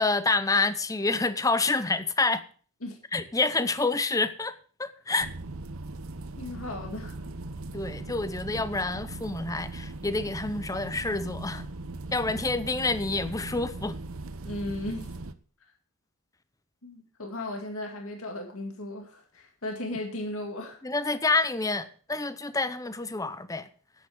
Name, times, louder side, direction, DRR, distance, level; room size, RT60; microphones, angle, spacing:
voice 1, 0.0-2.4 3.1-4.5 4.8-5.3 7.7-11.6 12.1-14.0 20.8-23.7, left 3 dB, 15° left, 0.7 m, -28 dB
sound 1, 5.2-15.3, right 2 dB, 70° right, 0.8 m, -39 dB
voice 2, 6.4-7.2 14.4-15.1 16.8-20.8, left 1 dB, 70° left, 2.1 m, -36 dB
10.0 x 8.5 x 6.4 m
head